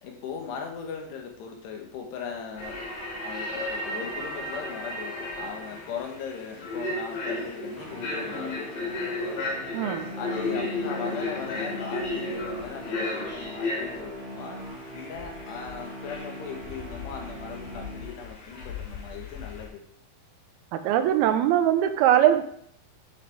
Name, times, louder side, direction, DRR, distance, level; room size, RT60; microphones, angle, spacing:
voice 1, 0.0-2.8 3.2-9.2 10.2-14.6 14.9-19.8, left 6 dB, 90° left, 2 dB, 3.7 m, -38 dB
sound 1, 2.6-19.7, left 2 dB, 60° left, 3.8 m, -34 dB
sound 2, 7.7-18.5, equal, 45° right, 1.8 m, -41 dB
voice 2, 9.7-10.1 20.7-22.4, right 11 dB, 80° right, 9 dB, 2.5 m, -21 dB
11.0 x 7.4 x 3.6 m, 0.66 s
omnidirectional pair, 4.7 m